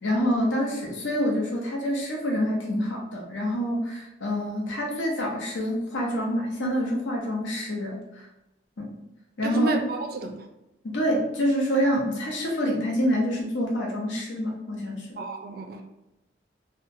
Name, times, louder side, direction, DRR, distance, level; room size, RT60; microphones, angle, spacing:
voice 1, 0.0-8.0 8.8-8.9 9.4-9.7 10.8-15.1, equal, 80° left, -1 dB, 0.7 m, -26 dB
voice 2, 9.4-10.4 15.2-15.8, right 3 dB, 50° right, 4 dB, 0.4 m, -30 dB
2.8 x 2.2 x 2.6 m, 0.93 s
head